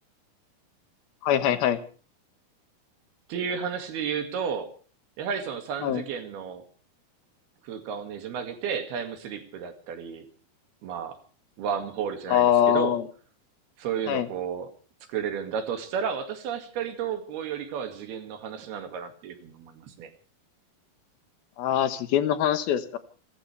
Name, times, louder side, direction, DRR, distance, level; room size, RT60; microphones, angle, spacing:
voice 1, 1.2-1.8 5.8-6.0 12.3-13.0 14.1-14.3 21.6-23.0, left 10 dB, 75° left, 11 dB, 3.1 m, -23 dB
voice 2, 3.3-4.7 5.2-6.6 7.6-10.3 10.8-11.2 11.6-13.0 13.8-14.7 15.1-20.1, right 7 dB, 85° right, 7 dB, 4.2 m, -32 dB
29.0 x 14.5 x 3.4 m, 0.40 s
omnidirectional pair, 4.4 m